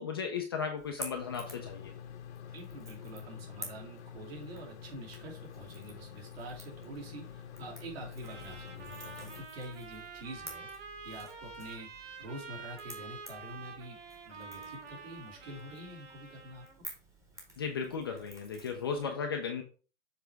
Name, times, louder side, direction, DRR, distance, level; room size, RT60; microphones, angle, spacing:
voice 1, 0.0-1.9 17.6-19.6, left 6 dB, 20° left, 2 dB, 0.4 m, -35 dB
Crackle / Crack, 0.8-19.1, right 1 dB, 10° right, 1.1 m, -52 dB
sound 1, 1.2-9.5, left 9 dB, 65° left, 0.9 m, -47 dB
voice 2, 2.5-14.0 14.3-16.7, right 1 dB, 55° right, -1 dB, 2.6 m, -46 dB
Trumpet, 8.2-16.8, right 4 dB, 85° right, 2.3 m, -47 dB
7.1 x 3.4 x 4.5 m, 0.36 s
hypercardioid pair, 155°, 36 cm